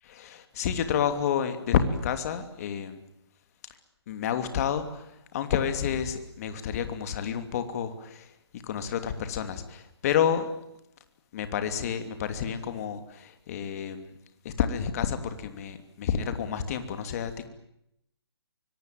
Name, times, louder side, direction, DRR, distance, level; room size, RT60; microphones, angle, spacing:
voice 1, 0.1-3.0 4.1-8.3 8.6-10.5 11.3-14.1 14.4-17.5, left 8 dB, 35° left, 9 dB, 2.9 m, -29 dB
24.5 x 23.0 x 9.3 m, 0.79 s
hypercardioid pair, 155°, 14 cm